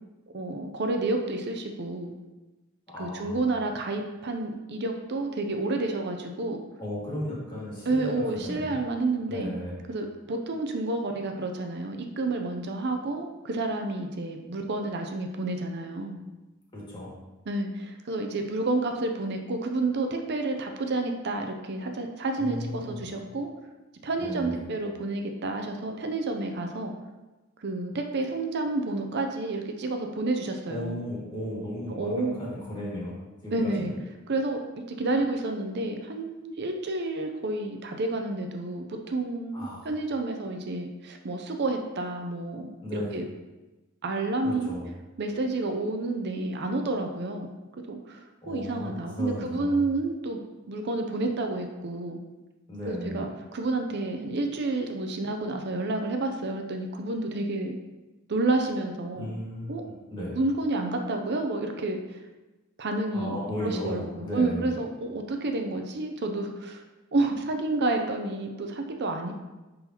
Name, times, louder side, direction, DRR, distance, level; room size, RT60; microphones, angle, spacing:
voice 1, 0.3-2.1 3.0-6.6 7.9-9.5 9.9-16.2 17.5-23.5 24.0-26.9 27.6-31.0 31.9-32.4 33.5-33.9 34.3-43.3 44.0-44.7 45.2-47.5 47.9-48.2 48.5-50.4 50.7-52.2 52.9-57.8 58.3-59.3 59.7-59.8 60.4-62.2 62.8-63.4 63.6-66.8 67.1-69.3, right 2 dB, 55° right, 4 dB, 0.6 m, -30 dB
voice 2, 2.9-3.4 6.8-8.7 9.3-9.8 16.7-17.1 22.4-23.0 24.2-24.6 30.7-33.1 33.4-33.9 39.5-39.8 42.8-43.1 44.4-44.8 48.4-49.8 52.7-53.3 59.1-60.3 63.1-64.8, left 1 dB, 20° left, -6 dB, 2.1 m, -35 dB
10.0 x 3.9 x 2.9 m, 1.1 s
head